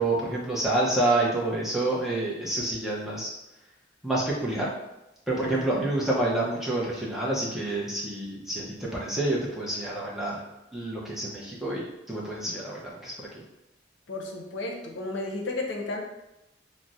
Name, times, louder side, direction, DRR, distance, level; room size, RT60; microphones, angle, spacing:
voice 1, 0.0-3.3 4.0-4.7 5.3-10.4 10.7-13.4, right 2 dB, ahead, -5 dB, 0.5 m, -28 dB
voice 2, 5.4-5.7 14.1-16.0, left 2 dB, 80° left, 1 dB, 0.6 m, -33 dB
2.4 x 2.0 x 3.9 m, 0.93 s
head